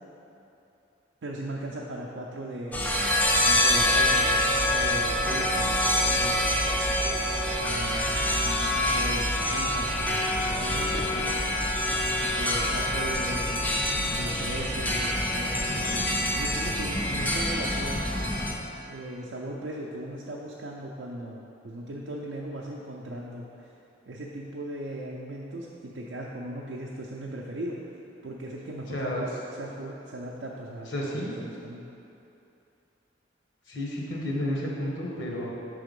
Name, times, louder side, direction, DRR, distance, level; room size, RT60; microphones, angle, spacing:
voice 1, 1.2-2.9 3.4-6.6 7.6-11.6 12.4-13.7 14.1-16.0 16.3-18.0 18.9-23.7 24.1-27.8 28.2-31.8, right 1 dB, 75° right, -3 dB, 0.5 m, -38 dB
sound 1, 2.7-18.5, left 1 dB, 10° left, 0.4 m, -26 dB
voice 2, 28.9-29.2 30.9-31.3 33.7-35.5, left 1 dB, 85° left, -3 dB, 1.1 m, -31 dB
5.9 x 3.5 x 5.2 m, 2.9 s
head